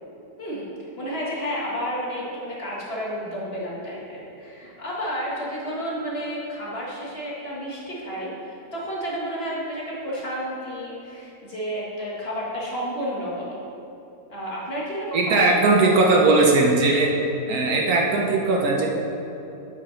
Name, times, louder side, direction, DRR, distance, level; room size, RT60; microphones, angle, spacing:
voice 1, 0.4-13.6 14.3-15.5, equal, 40° left, -6 dB, 1.9 m, -31 dB
voice 2, 15.1-17.1 17.5-18.9, right 3 dB, 65° right, 0 dB, 1.4 m, -19 dB
8.1 x 5.8 x 5.7 m, 3.0 s
omnidirectional pair, 1.7 m